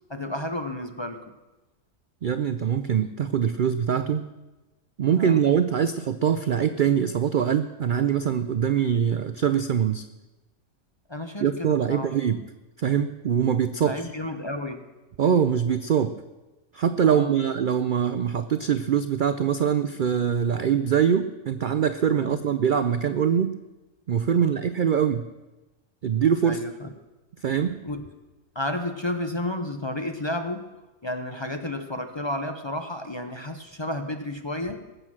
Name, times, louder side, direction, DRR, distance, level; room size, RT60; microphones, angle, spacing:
voice 1, 0.1-1.3 5.1-5.4 11.1-12.1 13.8-14.9 17.1-17.3 22.2-22.4 24.3-24.5 26.4-26.9 27.8-28.0 28.5-30.6 31.0-34.8, left 1 dB, 25° left, 6 dB, 0.6 m, -32 dB
voice 2, 2.2-4.3 5.0-10.0 11.4-12.4 12.8-14.0 15.2-16.2 16.7-23.6 24.1-25.3 26.0-26.6 27.4-27.8, right 8 dB, 75° right, 11 dB, 0.4 m, -23 dB
20.0 x 7.9 x 6.1 m, 1.1 s
omnidirectional pair, 1.5 m